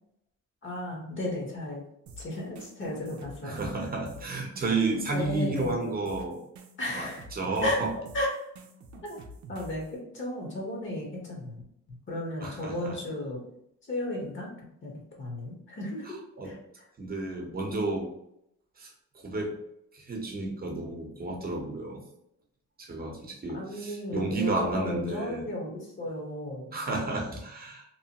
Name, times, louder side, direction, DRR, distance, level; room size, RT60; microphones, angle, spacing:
voice 1, 0.6-1.8 2.2-3.7 5.1-5.8 6.8-7.2 7.6-7.8 8.1-8.3 9.0-9.2 9.5-11.6 11.9-13.4 13.9-14.5 14.8-16.2 16.4-16.6 23.5-26.8, left 1 dB, 40° left, -2 dB, 1.1 m, -34 dB
sound 1, 2.1-9.9, right 1 dB, 70° right, 0.5 m, -47 dB
voice 2, 3.4-6.4 6.9-7.9 12.4-13.0 16.4-16.6 17.0-18.1 18.8-19.6 19.9-22.0 22.8-25.5 26.7-27.8, right 3 dB, 30° right, 1 dB, 0.9 m, -32 dB
2.9 x 2.1 x 2.8 m, 0.76 s
cardioid pair, 90°, 30 cm